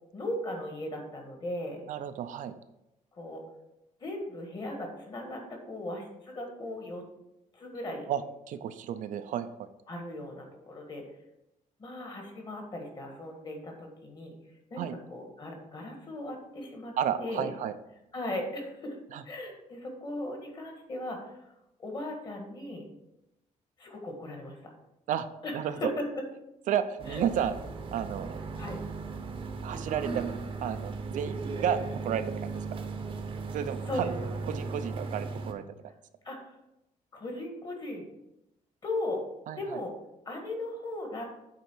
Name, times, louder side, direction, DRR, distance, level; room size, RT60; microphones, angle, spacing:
voice 1, 0.1-1.9 3.1-3.4 4.0-7.0 7.5-8.1 9.9-11.0 11.8-14.3 14.7-17.5 18.1-19.0 19.2-21.5 21.8-22.9 23.8-24.7 25.4-26.1 27.1-27.2 28.6-28.8 33.9-34.1 36.2-36.5 37.1-38.0 38.8-39.2 39.6-39.9 40.2-41.2, left 1 dB, 30° left, 3 dB, 1.5 m, -37 dB
voice 2, 1.9-2.5 8.1-8.2 8.5-9.7 14.8-15.0 17.0-17.7 19.1-19.2 25.1-25.3 25.5-25.9 26.7-27.5 27.9-28.4 29.6-30.3 30.6-32.8 33.5-34.1 34.5-35.9 39.5-39.8, right 9 dB, 70° right, 10 dB, 0.5 m, -32 dB
sound 1, 27.0-35.5, right 4 dB, 40° right, 0.8 m, -37 dB
8.3 x 3.7 x 6.1 m, 0.89 s
cardioid pair, 175°, 14 cm